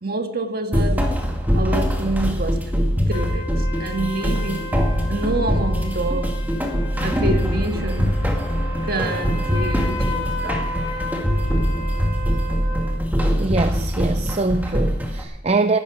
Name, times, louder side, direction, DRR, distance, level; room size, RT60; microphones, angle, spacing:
voice 1, 0.0-1.1 1.5-2.7 3.1-4.7 5.1-6.4 7.0-8.2 8.8-10.7, right 2 dB, 50° right, 1.6 m, -27 dB
sound 1, 0.7-15.2, equal, 10° right, 2.2 m, -22 dB
sound 2, 3.1-13.0, left 1 dB, 25° left, 2.8 m, -34 dB
voice 2, 13.4-15.8, right 3 dB, 30° right, 0.5 m, -23 dB
16.0 x 11.5 x 5.1 m
head